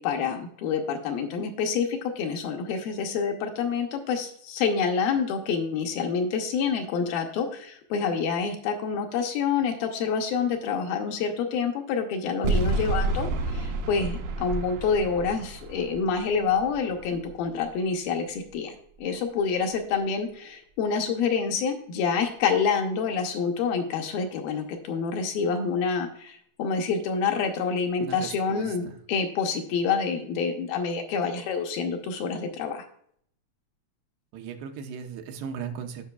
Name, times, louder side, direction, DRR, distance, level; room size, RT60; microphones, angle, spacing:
voice 1, 0.0-32.8, left 5 dB, 75° left, 4 dB, 2.5 m, -27 dB
sound 1, 12.4-17.6, right 2 dB, 70° right, 2.0 m, -30 dB
voice 2, 28.0-29.0 34.3-36.0, right 7 dB, 90° right, 4 dB, 3.0 m, -37 dB
15.5 x 5.5 x 2.3 m, 0.63 s
omnidirectional pair, 4.6 m